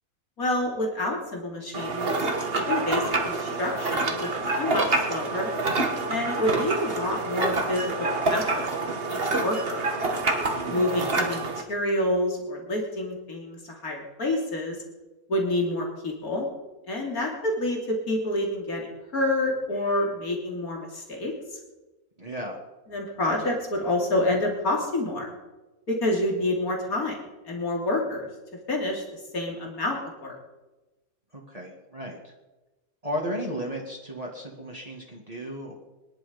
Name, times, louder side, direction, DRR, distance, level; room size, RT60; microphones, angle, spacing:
voice 1, 0.4-2.1 2.5-5.5 6.1-9.9 10.7-14.8 15.3-16.5 16.9-21.3 22.9-25.3 25.9-27.2 27.5-28.3 28.7-29.0 29.3-30.4, left 1 dB, 90° left, 0 dB, 3.6 m, -28 dB
sound 1, 1.7-11.6, right 2 dB, 40° right, 1.9 m, -27 dB
voice 2, 10.5-11.1 22.2-22.6 31.3-32.3 33.0-35.7, equal, 25° right, -2 dB, 2.3 m, -35 dB
24.5 x 11.0 x 5.3 m, 1.1 s
omnidirectional pair, 1.5 m